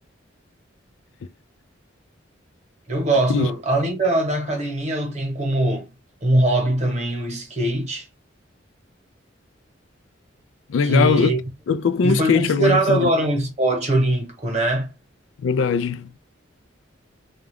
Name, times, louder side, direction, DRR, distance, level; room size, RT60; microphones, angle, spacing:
voice 1, 2.9-5.9 6.2-8.1 10.8-11.4 12.0-14.9, right 2 dB, 35° right, 1.0 m, -21 dB
voice 2, 10.7-11.3 11.7-13.1 15.4-16.1, left 5 dB, 75° left, 0.3 m, -20 dB
3.5 x 2.3 x 3.4 m
head